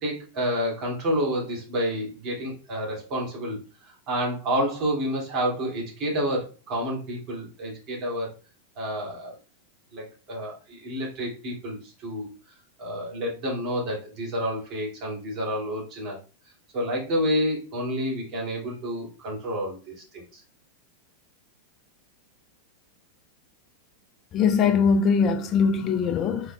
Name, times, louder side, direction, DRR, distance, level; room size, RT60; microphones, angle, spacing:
voice 1, 0.0-8.3 8.8-9.3 9.9-12.3 12.8-16.2 16.7-20.4, equal, 45° right, 2.6 m, -29 dB
voice 2, 24.3-26.5, left 5 dB, 35° left, 0.5 m, -21 dB
4.4 x 4.4 x 2.4 m
hypercardioid pair, 95°, 0 cm